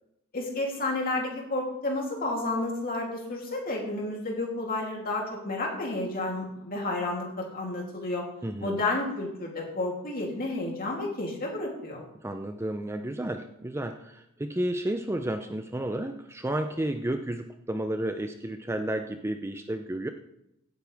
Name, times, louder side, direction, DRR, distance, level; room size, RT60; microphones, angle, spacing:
voice 1, 0.3-8.3 8.6-12.0, left 2 dB, 40° left, -1 dB, 3.0 m, -31 dB
voice 2, 8.4-8.8 12.1-20.1, right 1 dB, 10° right, 7 dB, 0.5 m, -32 dB
16.5 x 9.4 x 3.5 m, 0.84 s
head